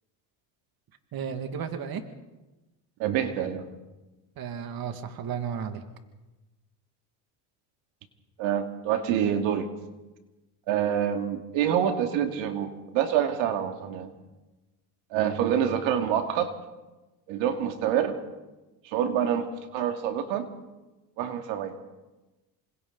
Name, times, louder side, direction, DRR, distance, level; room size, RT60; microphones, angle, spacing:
voice 1, 1.1-2.0 4.4-5.8, right 7 dB, 50° right, 7 dB, 2.2 m, -33 dB
voice 2, 3.0-3.6 8.4-9.7 10.7-14.1 15.1-16.5 17.3-18.2 18.9-19.5 19.7-20.5 21.2-21.7, right 9 dB, 75° right, 5 dB, 2.4 m, -26 dB
28.0 x 26.0 x 4.0 m, 1.1 s
supercardioid pair, 95°, 46 cm